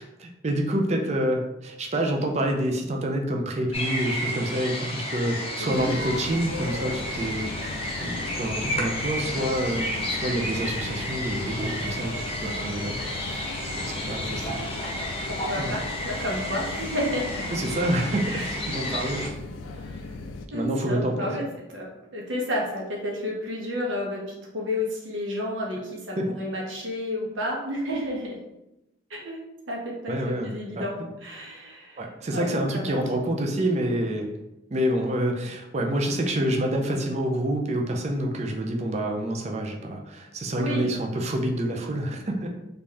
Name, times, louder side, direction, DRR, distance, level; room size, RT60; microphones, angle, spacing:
voice 1, 0.0-7.5 7.8-13.3 13.8-14.6 15.6-15.7 17.5-19.5 19.8-20.0 20.5-21.4 26.2-26.3 30.1-30.9 32.0-34.3 34.7-42.5, right 1 dB, 35° right, 2 dB, 0.4 m, -27 dB
sound 1, 3.7-19.3, left 1 dB, 30° left, 0.5 m, -32 dB
voice 2, 5.6-5.9 14.0-14.7 15.3-17.3 18.3-18.8 20.5-21.4 21.7-28.4 29.1-29.4 29.7-32.0 32.3-33.0 40.6-40.9, left 1 dB, 80° right, -2 dB, 1.0 m, -31 dB
sound 2, 5.7-20.5, left 3 dB, 80° left, 0.3 m, -37 dB
3.3 x 2.6 x 3.4 m, 0.91 s
head